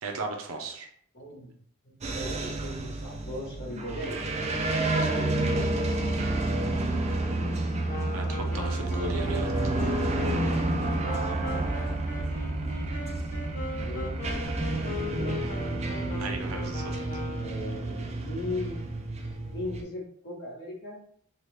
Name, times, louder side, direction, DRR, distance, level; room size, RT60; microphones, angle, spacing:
voice 1, 0.0-0.9 4.8-5.8 8.1-9.5 9.8-10.2 16.2-17.0, right 2 dB, 70° right, 3 dB, 0.6 m, -36 dB
voice 2, 1.1-1.5 1.8-4.2 10.7-11.7 13.7-14.2 14.8-15.4 17.4-18.8 19.5-21.0, left 2 dB, 55° left, -4 dB, 1.2 m, -38 dB
sound 1, 2.0-19.8, right 2 dB, 30° right, 0.4 m, -30 dB
Wind instrument woodwind instrument, 7.9-17.8, left 3 dB, 35° left, 0.6 m, -38 dB
2.9 x 2.4 x 3.2 m, 0.62 s
head